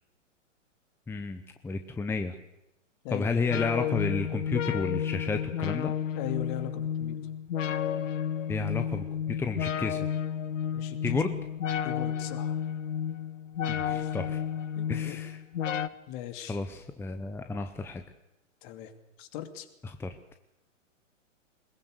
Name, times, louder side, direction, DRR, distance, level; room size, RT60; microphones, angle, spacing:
voice 1, 1.1-2.4 3.1-5.9 8.5-10.1 11.0-11.4 13.7-14.4 14.9-15.4 16.5-18.0 19.8-20.1, left 4 dB, 5° left, 7 dB, 0.9 m, -32 dB
sound 1, 3.5-15.9, left 8 dB, 75° left, 1.3 m, -31 dB
voice 2, 6.1-7.2 10.7-11.2 11.8-12.6 13.9-14.1 14.8-15.2 16.1-16.6 18.6-18.9 19.2-19.7, left 12 dB, 40° left, 8 dB, 2.8 m, -39 dB
21.5 x 21.5 x 8.2 m, 0.89 s
hypercardioid pair, 125°, 38 cm